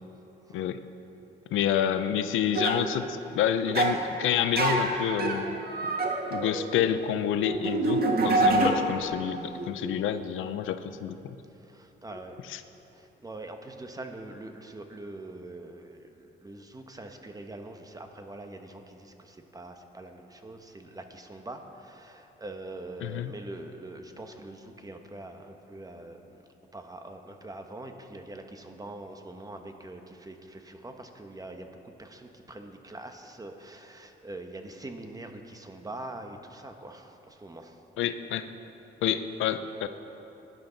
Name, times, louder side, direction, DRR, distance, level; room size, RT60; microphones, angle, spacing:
voice 1, 1.5-5.6 6.3-11.4 12.4-12.6 23.0-23.3 38.0-38.5 39.0-39.9, left 9 dB, 80° left, 10 dB, 0.6 m, -28 dB
sound 1, 2.5-2.8 3.7-4.0 4.6-9.1 9.4-9.7 12.1-12.2, right 2 dB, 50° right, 1.6 m, -27 dB
voice 2, 11.6-12.4 12.9-26.4 26.7-31.7 32.0-37.8, right 2 dB, 20° right, 5 dB, 1.1 m, -43 dB
17.0 x 10.5 x 4.0 m, 3.0 s
cardioid pair, 90°, 20 cm